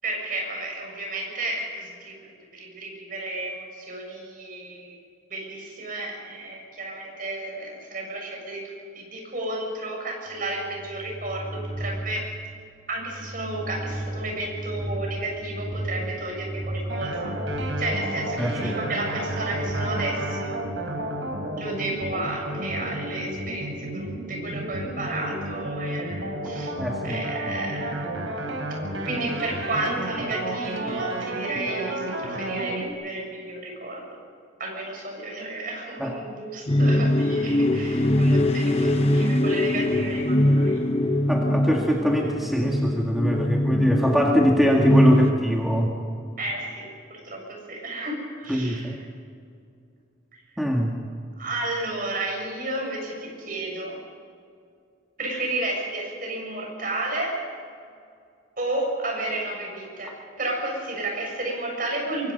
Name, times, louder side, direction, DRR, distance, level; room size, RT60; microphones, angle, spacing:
voice 1, 0.0-5.0 5.3-12.3 12.9-17.3 17.8-20.6 21.6-26.7 27.0-28.0 29.0-34.0 34.6-40.8 46.4-49.0 51.4-54.0 55.2-57.4 58.6-62.3, right 2 dB, 45° right, 0 dB, 7.2 m, -32 dB
sound 1, 10.4-21.0, right 1 dB, 20° right, 5.8 m, -35 dB
sound 2, 16.9-32.9, right 1 dB, 90° right, 4.3 m, -32 dB
voice 2, 18.4-18.7 26.8-27.2 36.0-36.2 41.3-46.0 48.5-49.0 50.6-51.0, equal, ahead, -2 dB, 1.8 m, -23 dB
sound 3, 36.7-45.3, left 1 dB, 30° left, 1.1 m, -22 dB
24.0 x 23.0 x 5.4 m, 2.4 s
head